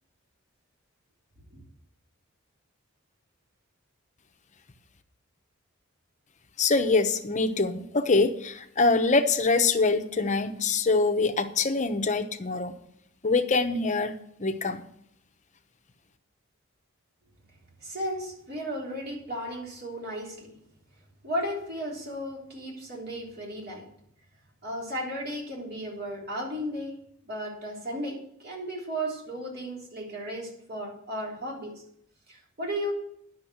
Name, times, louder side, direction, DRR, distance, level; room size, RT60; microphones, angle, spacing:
voice 1, 6.6-12.8 13.2-14.8, left 3 dB, 35° left, 8 dB, 0.9 m, -24 dB
voice 2, 17.8-20.6 21.2-23.9 24.6-27.0 27.3-31.7 32.3-32.9, equal, 50° right, -1 dB, 3.5 m, -35 dB
10.0 x 6.7 x 7.9 m, 0.72 s
head